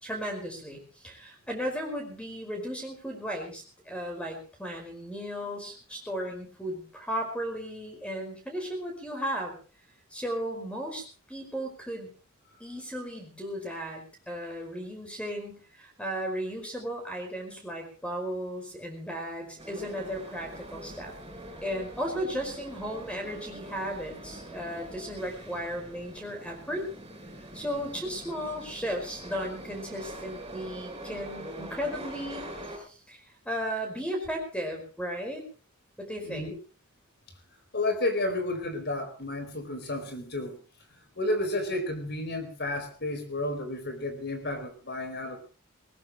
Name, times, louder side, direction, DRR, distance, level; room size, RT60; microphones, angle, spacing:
voice 1, 0.0-9.5 10.1-12.1 12.6-21.1 21.6-26.9 27.5-32.4 32.8-33.2 33.4-35.4 36.0-36.5, equal, 5° left, 3 dB, 5.1 m, -35 dB
sound 1, 19.6-32.8, right 1 dB, 20° right, 6.0 m, -44 dB
voice 2, 37.7-40.6 41.2-45.4, left 2 dB, 50° left, 8 dB, 4.3 m, -31 dB
20.5 x 19.5 x 3.1 m, 0.36 s
head